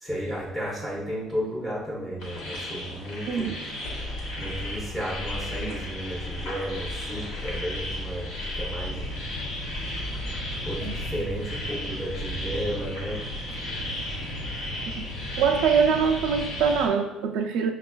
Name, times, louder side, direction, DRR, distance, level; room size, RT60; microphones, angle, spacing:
voice 1, 0.0-3.5 4.4-9.1 10.7-13.2, equal, 10° left, -6 dB, 0.6 m, -33 dB
sound 1, 2.2-16.9, left 1 dB, 80° left, 1.0 m, -35 dB
sound 2, 3.8-13.0, left 1 dB, 50° left, 0.6 m, -38 dB
voice 2, 15.4-17.7, right 6 dB, 80° right, 5 dB, 0.3 m, -23 dB
5.9 x 2.3 x 2.2 m, 1.0 s
cardioid pair, 155°, 0 cm